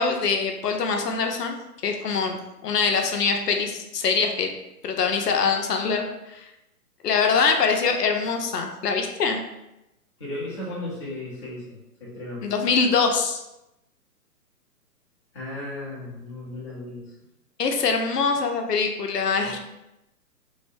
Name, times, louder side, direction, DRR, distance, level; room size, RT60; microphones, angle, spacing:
voice 1, 0.0-1.6 1.8-4.5 4.8-6.0 6.3-6.5 7.0-9.4 12.4-13.4 17.6-19.6, left 5 dB, 85° left, 4 dB, 0.6 m, -23 dB
voice 2, 10.2-12.5 15.3-17.1 19.4-19.6, left 1 dB, 20° left, -7 dB, 0.4 m, -35 dB
2.7 x 2.0 x 2.5 m, 0.90 s
figure-of-eight pair, 130°, 46 cm